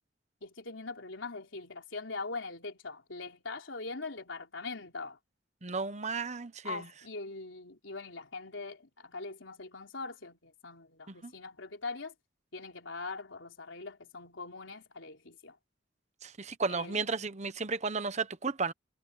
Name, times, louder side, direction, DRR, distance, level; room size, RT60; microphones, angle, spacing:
voice 1, 0.4-5.2 6.6-12.1 12.5-15.6 16.7-17.0, left 3 dB, 80° left, 3.8 m, -42 dB
voice 2, 5.6-6.8 11.1-11.3 16.2-18.7, right 4 dB, 35° right, 1.0 m, -34 dB
head